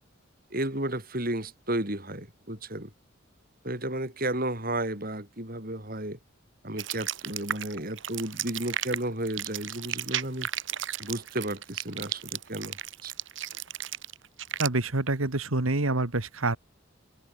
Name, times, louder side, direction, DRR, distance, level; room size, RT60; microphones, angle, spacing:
voice 1, 0.5-2.9 3.6-6.2 6.6-10.5 11.0-13.1, right 1 dB, 45° right, 7.4 m, -33 dB
sound 1, 6.8-14.7, right 11 dB, 65° right, 1.7 m, -34 dB
voice 2, 14.6-16.6, right 2 dB, 85° right, 2.0 m, -27 dB
head